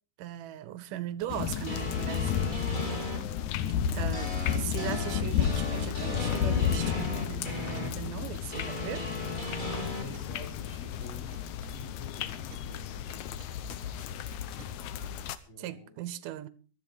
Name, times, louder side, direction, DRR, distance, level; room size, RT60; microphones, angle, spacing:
voice 1, 0.2-3.0 3.9-9.1 15.6-16.5, right 12 dB, 85° right, 2.4 m, -39 dB
sound 1, 1.2-6.3 6.6-12.8 13.1-14.7, right 7 dB, 55° right, 1.0 m, -51 dB
sound 2, 1.3-15.4, left 9 dB, 70° left, 2.0 m, -32 dB
sound 3, 1.7-3.2 4.1-7.9 8.5-10.0, left 1 dB, 15° left, 2.3 m, -37 dB
voice 2, 3.0-3.5 10.0-13.0 13.8-14.3 15.5-15.9, equal, 40° left, 5.5 m, -50 dB
14.5 x 12.5 x 5.0 m
omnidirectional pair, 3.7 m